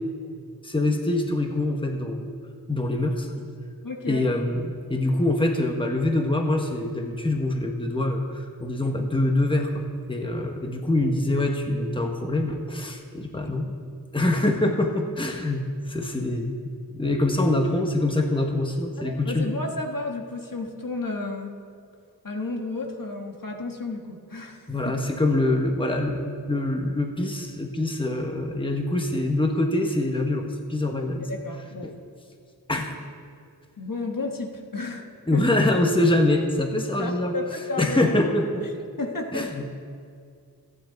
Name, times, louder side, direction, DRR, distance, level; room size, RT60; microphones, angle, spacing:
voice 1, 0.6-2.3 2.7-3.3 4.1-13.7 14.1-19.5 24.7-31.3 31.8-31.9 32.7-32.9 35.3-37.3 37.8-38.5 39.3-39.7, left 1 dB, 15° left, 3 dB, 1.4 m, -24 dB
voice 2, 3.8-4.3 13.2-13.6 19.0-21.6 22.2-24.9 31.3-31.9 33.8-35.4 37.0-38.2 39.0-39.6, left 3 dB, 55° left, 2 dB, 1.6 m, -32 dB
28.0 x 9.7 x 4.0 m, 2.2 s
wide cardioid pair, 65°, 39 cm